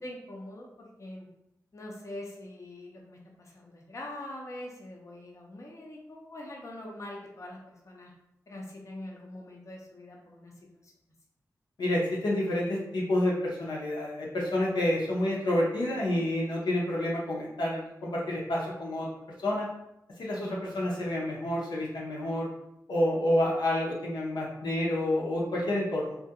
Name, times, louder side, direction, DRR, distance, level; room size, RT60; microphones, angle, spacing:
voice 1, 0.0-1.3 1.7-7.6 7.8-8.1 8.5-10.5 10.8-10.9 20.4-20.8, left 1 dB, 45° left, -2 dB, 0.5 m, -43 dB
voice 2, 11.8-19.1 19.4-19.7 20.2-22.5 22.9-26.2, left 1 dB, 85° left, -5 dB, 0.7 m, -29 dB
2.3 x 2.1 x 2.8 m, 0.84 s
cardioid pair, 50°, 7 cm